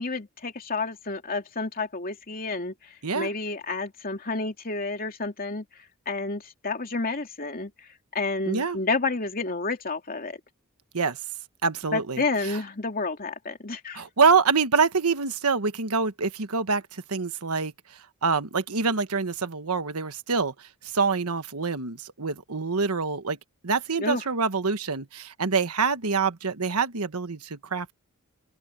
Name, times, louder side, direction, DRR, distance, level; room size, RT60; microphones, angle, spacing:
voice 1, 0.0-2.7 3.1-5.6 6.1-7.7 8.1-10.4 11.9-14.0 24.0-24.2, left 3 dB, 40° left, 2.8 m, -30 dB
voice 2, 8.5-8.8 10.9-11.2 11.6-12.6 13.9-17.7 18.2-20.7 20.9-23.4 23.6-27.9, right 5 dB, 90° right, 1.3 m, -26 dB
open air
head